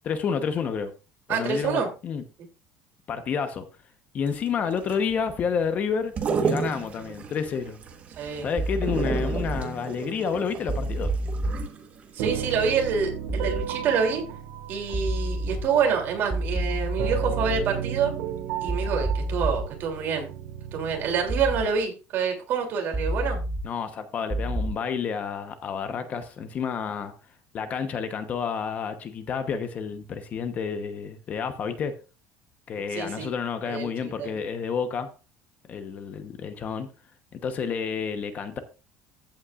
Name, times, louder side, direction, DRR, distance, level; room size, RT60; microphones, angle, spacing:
voice 1, 0.0-0.9 1.3-2.2 3.1-3.7 4.1-6.1 6.4-7.8 8.4-11.1 23.6-27.1 27.5-31.9 32.7-35.1 35.7-36.9 37.3-38.6, left 6 dB, 35° left, 1.0 m, -30 dB
voice 2, 1.3-1.9 8.2-8.5 12.1-14.2 14.7-18.1 18.6-20.3 20.7-23.4 32.9-33.3 33.6-34.3, right 6 dB, 45° right, 3.0 m, -27 dB
sound 1, 4.3-12.2 12.5-12.6, right 5 dB, 30° right, 1.3 m, -32 dB
sound 2, 8.6-9.6 10.7-11.6 13.3-13.6 14.9-15.6 16.3-17.6 18.7-19.6 21.3-21.6 22.9-23.6 24.3-24.7, right 1 dB, 10° right, 2.0 m, -28 dB
sound 3, 12.2-21.8, right 9 dB, 75° right, 1.9 m, -35 dB
14.5 x 8.5 x 2.5 m
cardioid pair, 165°, 5 cm